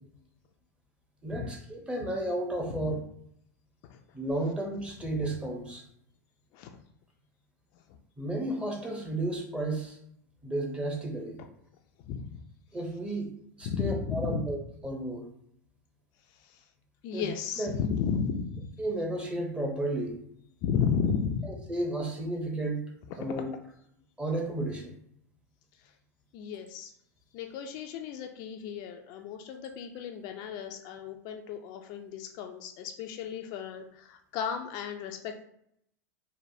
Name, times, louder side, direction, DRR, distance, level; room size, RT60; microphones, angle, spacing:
voice 1, 1.2-3.0 4.1-5.8 8.2-10.0 10.4-11.4 12.7-13.3 13.6-15.2 17.1-17.3 17.6-17.8 18.8-20.2 21.4-22.9 23.2-23.5 24.2-24.9, right 1 dB, 10° right, 1 dB, 0.7 m, -33 dB
voice 2, 12.0-12.4 13.7-14.4 16.4-16.6 17.0-18.7 20.6-21.5 26.3-26.9 27.3-35.4, left 7 dB, 50° left, 5 dB, 0.3 m, -33 dB
3.2 x 2.1 x 2.6 m, 0.71 s
hypercardioid pair, 90°, 9 cm